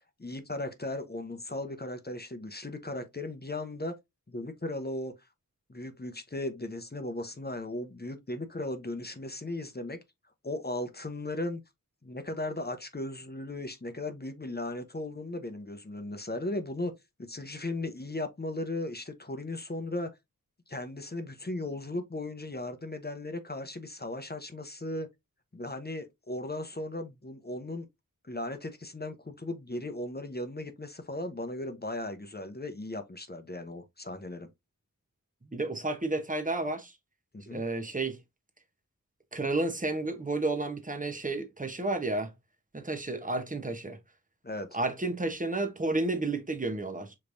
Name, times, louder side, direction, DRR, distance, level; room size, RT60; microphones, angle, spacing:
voice 1, 0.2-4.0 4.3-5.1 5.7-10.0 10.4-11.6 12.0-16.9 17.2-20.1 20.7-25.1 25.5-27.9 28.2-34.5 37.3-37.6 44.4-44.8, left 2 dB, 30° left, 0.8 m, -37 dB
voice 2, 35.5-36.9 37.5-38.2 39.3-42.3 42.7-44.0 44.7-47.1, right 2 dB, 25° right, 0.9 m, -31 dB
5.1 x 3.2 x 2.6 m
wide cardioid pair, 50°, 34 cm